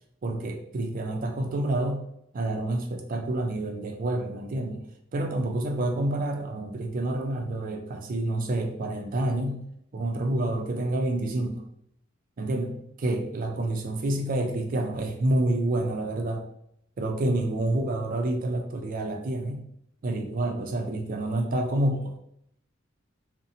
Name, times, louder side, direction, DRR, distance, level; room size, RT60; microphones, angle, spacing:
voice 1, 0.2-2.0 2.3-4.8 5.1-9.6 9.9-11.6 12.4-16.4 17.0-19.6 20.0-22.2, right 1 dB, 45° right, 3 dB, 0.4 m, -28 dB
2.6 x 2.1 x 2.6 m, 0.72 s
head